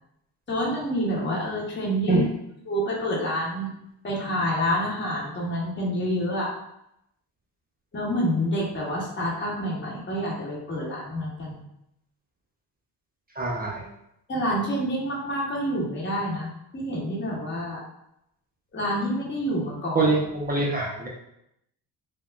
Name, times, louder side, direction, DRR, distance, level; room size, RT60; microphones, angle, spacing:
voice 1, 0.5-2.2 2.7-3.7 4.0-6.5 7.9-11.6 14.3-17.8 18.7-20.1, equal, 25° left, -5 dB, 1.0 m, -28 dB
voice 2, 13.4-13.8 19.9-21.1, right 3 dB, 20° right, -3 dB, 0.6 m, -24 dB
3.4 x 2.2 x 2.3 m, 0.81 s
supercardioid pair, 65°, 46 cm